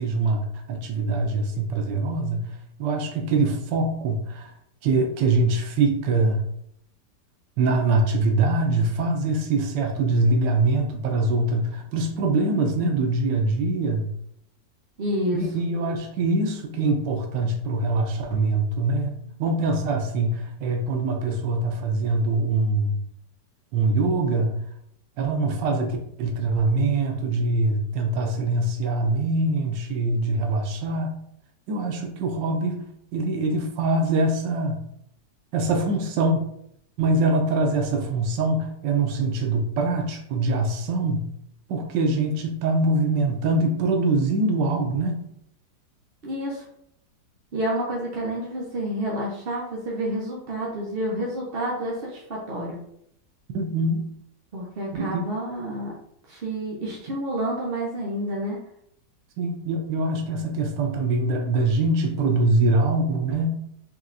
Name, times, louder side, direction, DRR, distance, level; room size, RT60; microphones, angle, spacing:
voice 1, 0.0-4.5 4.8-6.4 7.6-14.1 15.3-23.0 23.7-24.6 25.2-31.2 31.7-34.9 35.5-36.5 37.0-41.3 41.7-45.3 53.5-54.1 54.9-55.2 59.4-63.6, right 2 dB, 90° right, 2 dB, 1.3 m, -23 dB
voice 2, 15.0-15.4 46.2-46.6 47.5-52.8 54.5-55.9 56.3-58.6, right 1 dB, 50° right, -3 dB, 0.7 m, -29 dB
4.4 x 3.1 x 2.5 m, 0.71 s
omnidirectional pair, 1.9 m